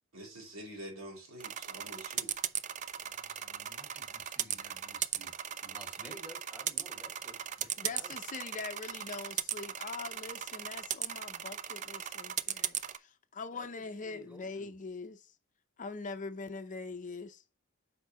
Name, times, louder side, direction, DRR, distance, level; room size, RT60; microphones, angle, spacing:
voice 1, 0.1-2.3, right 1 dB, 75° right, 3.1 m, -46 dB
sound 1, 1.4-13.0, right 10 dB, 35° right, 0.4 m, -38 dB
voice 2, 3.0-5.3 5.6-8.1 13.5-14.7, equal, 10° right, 1.8 m, -54 dB
voice 3, 7.8-15.3 15.8-17.4, left 4 dB, 40° left, 0.6 m, -43 dB
8.2 x 5.2 x 3.0 m
head